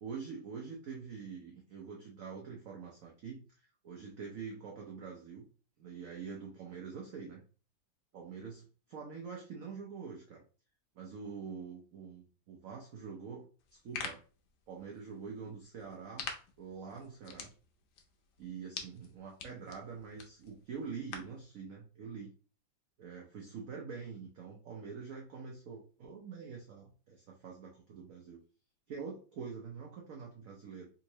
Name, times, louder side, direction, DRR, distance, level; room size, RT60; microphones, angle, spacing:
voice 1, 0.0-5.5 5.8-7.4 8.1-8.6 8.9-10.4 10.9-13.5 13.8-14.2 14.7-16.3 16.6-17.5 18.4-22.3 23.0-28.4 28.9-30.9, right 5 dB, 70° right, -1 dB, 0.8 m, -45 dB
sound 1, 13.6-21.4, left 6 dB, 80° left, 1.4 m, -47 dB
3.6 x 2.7 x 2.9 m, 0.38 s
omnidirectional pair, 2.1 m